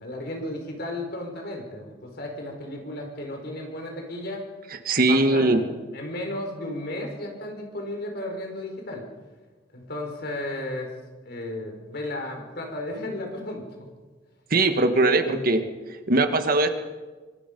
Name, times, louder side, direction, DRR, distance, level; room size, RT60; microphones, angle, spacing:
voice 1, 0.0-4.5 5.1-9.1 9.7-10.9 11.2-13.9 14.9-15.5, left 1 dB, 60° left, 2 dB, 5.1 m, -34 dB
voice 2, 4.8-5.6 14.5-15.6 16.1-16.7, right 2 dB, 55° right, 7 dB, 1.6 m, -20 dB
25.0 x 24.5 x 5.3 m, 1.3 s
head